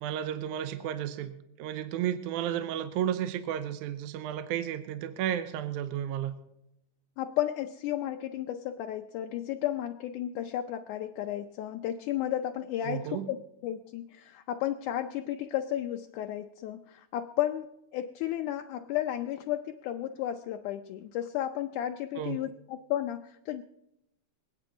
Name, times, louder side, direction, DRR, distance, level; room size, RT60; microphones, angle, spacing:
voice 1, 0.0-6.4 12.8-13.3 22.2-22.4, right 10 dB, 75° right, 10 dB, 2.0 m, -33 dB
voice 2, 7.2-13.4 13.6-23.6, left 12 dB, 80° left, 5 dB, 2.0 m, -33 dB
26.5 x 9.1 x 3.9 m, 0.84 s
omnidirectional pair, 3.8 m